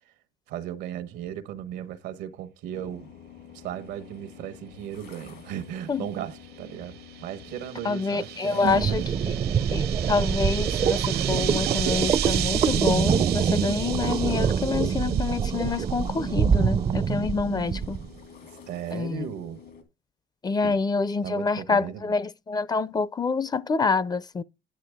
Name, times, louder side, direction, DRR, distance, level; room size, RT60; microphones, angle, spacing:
voice 1, 0.5-3.1 3.5-9.1 9.5-9.6 18.7-19.6 20.6-20.8 21.2-22.1, right 10 dB, 90° right, 1.1 m, -36 dB
sound 1, 2.7-19.8, left 7 dB, 75° left, 2.1 m, -49 dB
sound 2, 6.7-16.5, right 13 dB, 70° right, 0.7 m, -34 dB
voice 2, 7.8-9.4 9.7-18.0 18.9-19.3 20.4-24.4, left 4 dB, 25° left, 0.5 m, -27 dB
sound 3, 8.6-18.1, right 7 dB, 35° right, 0.4 m, -25 dB
9.5 x 7.5 x 3.4 m
cardioid pair, 110°, 17 cm